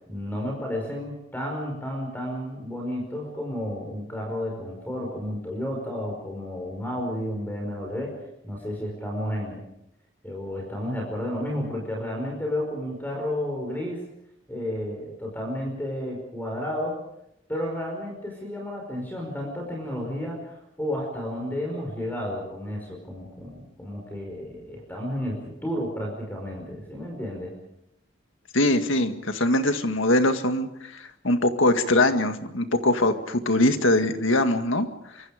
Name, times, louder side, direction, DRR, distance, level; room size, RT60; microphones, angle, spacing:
voice 1, 0.1-8.2 8.4-9.6 10.2-14.0 14.5-17.0 17.5-27.6, left 1 dB, 10° left, 1 dB, 5.3 m, -32 dB
voice 2, 28.5-34.9, left 1 dB, 80° left, 7 dB, 1.9 m, -22 dB
27.0 x 24.5 x 5.1 m, 0.80 s
head